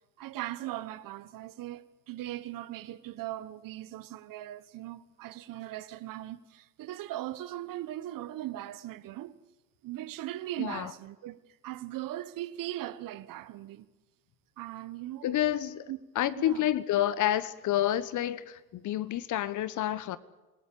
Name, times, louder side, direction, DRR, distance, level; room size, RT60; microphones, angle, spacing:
voice 1, 0.2-9.4 9.8-11.4 11.6-13.9 14.6-15.3 15.9-16.0 16.4-16.7, right 14 dB, 45° right, 1.4 m, -39 dB
voice 2, 10.6-10.9 15.2-15.8 16.1-20.2, left 12 dB, 40° left, 1.1 m, -29 dB
27.0 x 18.0 x 8.6 m
hypercardioid pair, 90°, 48 cm